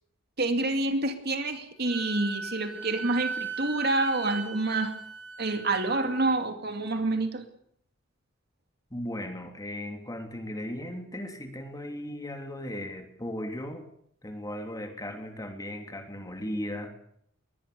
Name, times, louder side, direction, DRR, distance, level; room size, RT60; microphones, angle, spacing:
voice 1, 0.4-5.0 5.4-7.4, right 2 dB, 55° right, 6 dB, 2.6 m, -28 dB
Wind instrument woodwind instrument, 1.9-6.3, right 5 dB, 85° right, 6.0 m, -37 dB
voice 2, 8.9-13.8 14.2-16.9, left 1 dB, 20° left, 5 dB, 3.1 m, -37 dB
22.0 x 19.5 x 6.9 m, 0.68 s
head